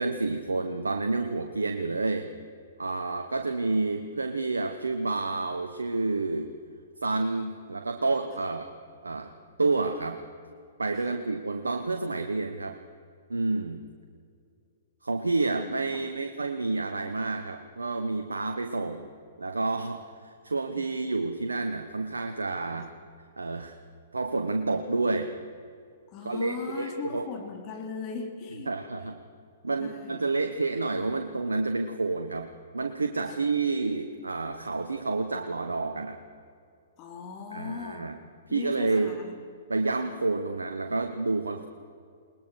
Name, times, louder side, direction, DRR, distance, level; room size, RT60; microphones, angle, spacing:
voice 1, 0.0-2.3 2.8-6.5 7.0-8.7 9.0-9.3 9.6-10.2 10.8-12.8 13.3-13.8 15.0-19.1 19.4-22.9 23.4-23.8 24.1-25.3 26.2-27.3 28.7-29.2 29.6-36.2 37.5-38.1 38.5-39.2 39.7-41.7, right 3 dB, 85° right, 6 dB, 1.2 m, -29 dB
voice 2, 26.1-28.7 29.8-30.2 37.0-38.1 38.5-39.3, left 6 dB, 35° left, 4 dB, 3.1 m, -39 dB
21.0 x 20.5 x 6.4 m, 2.4 s
hypercardioid pair, 120°, 0 cm